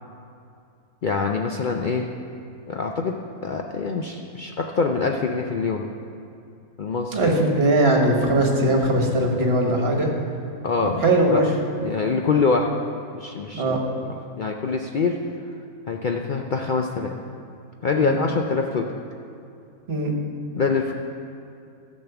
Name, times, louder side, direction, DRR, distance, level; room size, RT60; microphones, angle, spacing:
voice 1, 1.0-2.1 2.7-3.1 3.4-5.8 6.8-7.3 10.6-11.0 11.3-11.4 11.8-12.7 13.1-13.7 14.0-15.2 15.9-17.1 17.8-18.9 20.5-20.9, left 4 dB, 80° left, 2 dB, 0.4 m, -24 dB
voice 2, 7.1-10.1 10.8-11.4 13.5-13.8 18.0-18.2 19.9-20.1, right 1 dB, 45° right, 1 dB, 1.7 m, -20 dB
12.5 x 6.4 x 7.0 m, 2.5 s
omnidirectional pair, 1.6 m